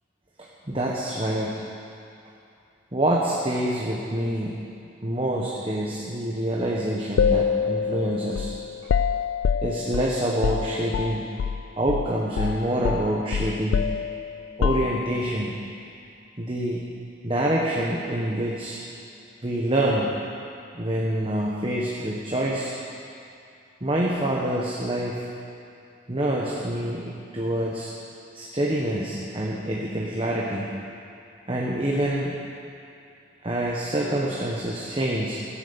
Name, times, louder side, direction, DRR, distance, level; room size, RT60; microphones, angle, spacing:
voice 1, 0.4-1.6 2.9-4.6 5.0-8.5 9.6-11.3 11.8-14.0 14.6-15.6 16.4-16.8 17.2-18.8 19.4-20.2 20.7-22.8 23.8-25.3 26.1-27.9 28.3-30.7 31.5-32.4 33.4-35.4, right 1 dB, 30° right, -3 dB, 1.3 m, -26 dB
sound 1, 7.2-11.6 11.9-12.1 12.4-15.3, left 6 dB, 85° left, 0.3 m, -26 dB
16.0 x 10.5 x 7.1 m, 2.5 s
head